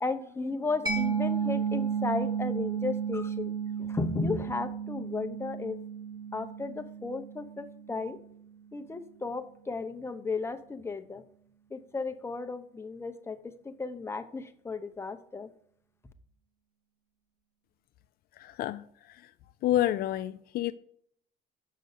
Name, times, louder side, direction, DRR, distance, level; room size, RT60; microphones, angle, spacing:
voice 1, 0.0-5.8 6.3-8.2 8.7-11.2 11.7-15.5, left 3 dB, 15° left, 0.8 m, -34 dB
Mallet percussion, 0.9-8.2, right 7 dB, 25° right, 1.9 m, -33 dB
voice 2, 18.4-19.3 19.6-20.7, left 13 dB, 65° left, 0.4 m, -29 dB
6.7 x 5.4 x 6.6 m
cardioid pair, 110°, 17 cm